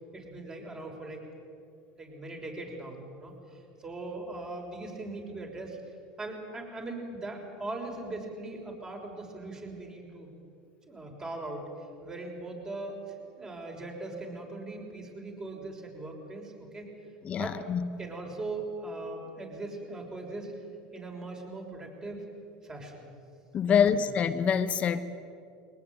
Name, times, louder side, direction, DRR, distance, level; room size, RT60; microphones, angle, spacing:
voice 1, 0.1-1.2 2.0-5.8 6.2-10.4 10.9-11.7 12.0-13.0 13.4-16.9 17.3-17.6 18.0-20.5 20.9-22.2 22.6-23.1 23.6-23.8, right 2 dB, 20° right, 1 dB, 6.4 m, -40 dB
voice 2, 17.2-17.9 23.5-25.0, left 7 dB, 40° left, 10 dB, 1.1 m, -26 dB
22.5 x 19.5 x 9.1 m, 2.5 s
supercardioid pair, 100°, 4 cm